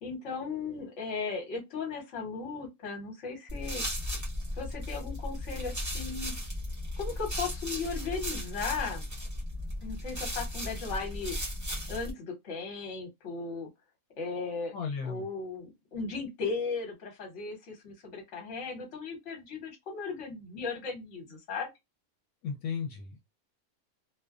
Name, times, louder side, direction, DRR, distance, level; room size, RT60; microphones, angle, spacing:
voice 1, 0.0-3.8 4.5-6.3 7.0-9.0 9.8-11.4 11.9-13.7 14.2-14.7 15.0-21.7, left 4 dB, 60° left, 1.3 m, -36 dB
sound 1, 3.5-12.1, left 1 dB, 20° right, 0.5 m, -36 dB
voice 2, 14.7-15.3 22.4-23.3, left 6 dB, 85° left, 1.0 m, -35 dB
2.6 x 2.1 x 2.3 m
omnidirectional pair, 1.5 m